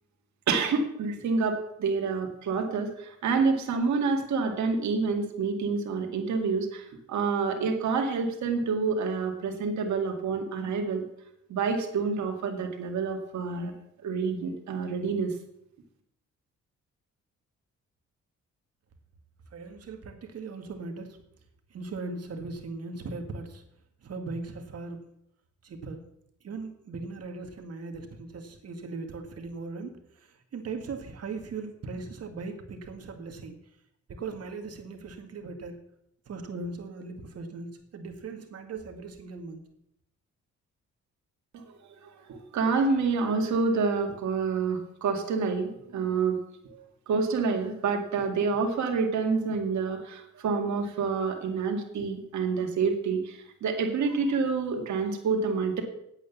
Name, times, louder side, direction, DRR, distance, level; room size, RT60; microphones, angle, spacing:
voice 1, 0.5-11.0 11.5-13.7 14.0-15.3 41.5-41.7 42.0-46.4 46.7-55.8, right 4 dB, 70° right, 2 dB, 2.2 m, -28 dB
voice 2, 19.5-21.2 21.7-23.6 24.0-25.0 25.6-26.0 26.4-33.6 34.1-35.8 36.3-39.6, right 3 dB, 55° right, 5 dB, 2.0 m, -39 dB
9.0 x 8.2 x 7.1 m, 0.76 s
cardioid pair, 90°, 30 cm